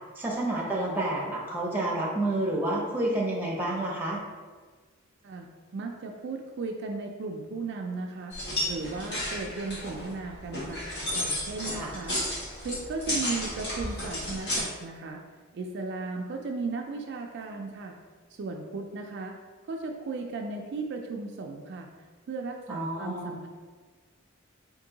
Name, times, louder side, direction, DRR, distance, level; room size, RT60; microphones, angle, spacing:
voice 1, 0.2-4.2 11.8-11.9 22.7-23.4, right 1 dB, 10° right, -3 dB, 0.6 m, -29 dB
voice 2, 5.7-8.3 8.7-10.9 11.1-12.2 12.6-15.3 15.5-18.0 18.4-19.4 19.7-21.9 22.3-23.5, right 3 dB, 55° right, 2 dB, 0.3 m, -36 dB
sound 1, 8.3-14.6, left 1 dB, 50° left, 1.3 m, -33 dB
3.7 x 2.6 x 3.8 m, 1.4 s
head